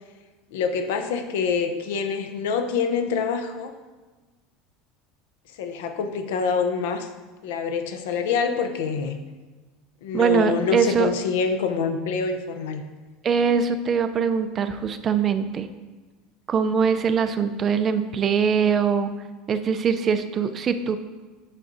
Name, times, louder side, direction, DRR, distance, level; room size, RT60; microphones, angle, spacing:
voice 1, 0.5-3.7 5.6-7.1 7.4-9.2 10.0-12.8, left 5 dB, 85° left, 7 dB, 0.6 m, -26 dB
voice 2, 10.1-11.1 13.2-15.7 16.5-19.1 19.5-21.0, right 6 dB, 30° right, 9 dB, 0.4 m, -22 dB
7.5 x 6.0 x 2.6 m, 1.3 s
supercardioid pair, 130°, 0 cm